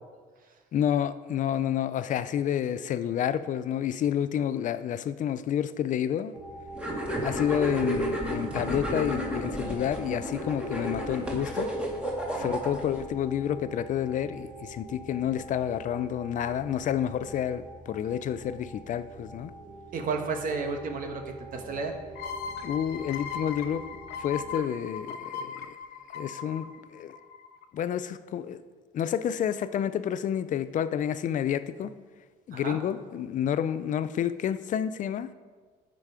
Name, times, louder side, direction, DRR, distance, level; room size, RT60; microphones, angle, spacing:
voice 1, 0.7-6.3 7.2-11.7 12.4-19.5 22.6-23.9 24.2-25.8 26.1-27.1 27.7-28.6 28.9-31.9 32.5-35.3, left 9 dB, 50° left, 0.5 m, -29 dB
sound 1, 6.3-24.5, right 1 dB, 25° right, 2.1 m, -45 dB
sound 2, 6.8-13.0, equal, 5° right, 1.9 m, -32 dB
voice 2, 19.9-21.2 21.5-21.9 32.5-32.8, right 4 dB, 55° right, 1.3 m, -32 dB
sound 3, 22.2-27.6, left 6 dB, 80° left, 0.9 m, -38 dB
13.5 x 5.2 x 4.8 m
cardioid pair, 110°, 17 cm